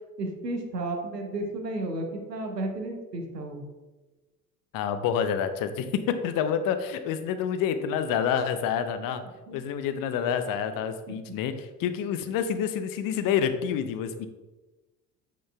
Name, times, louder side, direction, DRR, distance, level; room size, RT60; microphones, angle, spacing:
voice 1, 0.2-3.6 9.5-9.6, right 2 dB, 85° right, 3 dB, 1.0 m, -33 dB
voice 2, 4.7-9.2 9.5-14.3, left 8 dB, 45° left, 10 dB, 0.7 m, -28 dB
8.1 x 6.1 x 2.3 m, 1.2 s
figure-of-eight pair, 60°, 48 cm